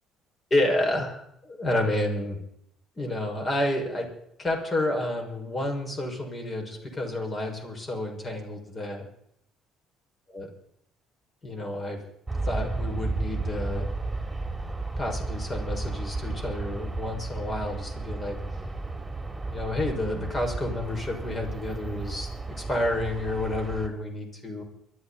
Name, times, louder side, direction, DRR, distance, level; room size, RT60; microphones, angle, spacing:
voice 1, 0.5-2.4 3.0-4.1 4.4-9.0 10.3-10.5 11.4-12.0 12.4-13.8 15.0-18.4 19.5-24.6, left 1 dB, 35° left, 2 dB, 6.2 m, -30 dB
Aircraft, 12.3-23.9, right 3 dB, 10° right, 3.1 m, -33 dB
23.5 x 13.5 x 4.3 m, 0.73 s
hypercardioid pair, 55°, 0 cm